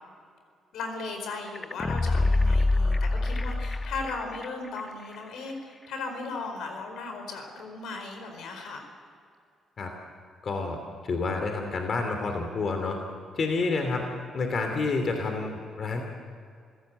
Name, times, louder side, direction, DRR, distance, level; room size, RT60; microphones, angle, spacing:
voice 1, 0.7-8.9, left 3 dB, 80° left, 5 dB, 4.6 m, -37 dB
sound 1, 1.5-4.5 4.8-4.9, left 2 dB, 20° left, 0.6 m, -25 dB
voice 2, 10.4-10.8 11.0-13.0 13.3-14.0 14.3-16.0, left 3 dB, 50° left, 4 dB, 2.9 m, -29 dB
28.0 x 16.0 x 8.1 m, 2.3 s
cardioid pair, 90°, 0 cm